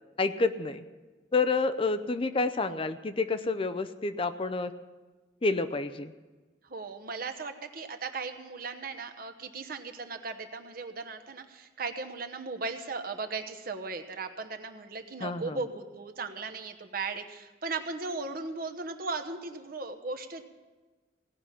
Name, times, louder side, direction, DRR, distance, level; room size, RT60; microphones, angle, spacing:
voice 1, 0.2-0.8 1.3-4.7 5.4-6.1 15.2-15.6, left 3 dB, 30° left, 11 dB, 0.5 m, -29 dB
voice 2, 6.7-20.4, right 4 dB, 50° right, 7 dB, 1.0 m, -37 dB
17.5 x 5.8 x 9.8 m, 1.3 s
head